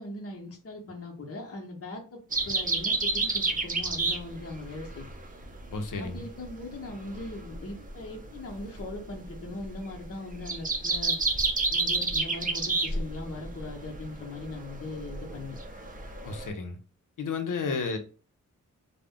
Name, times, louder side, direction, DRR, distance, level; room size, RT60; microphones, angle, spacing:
voice 1, 0.0-5.1 6.0-11.2 11.7-15.6 17.6-17.8, left 2 dB, 50° left, 0.9 m, -40 dB
sound 1, 2.3-16.5, right 3 dB, 25° right, 0.5 m, -31 dB
voice 2, 5.7-6.2 16.2-16.8 17.2-18.0, left 4 dB, 85° left, 0.6 m, -32 dB
2.3 x 2.1 x 3.5 m
wide cardioid pair, 75°, 31 cm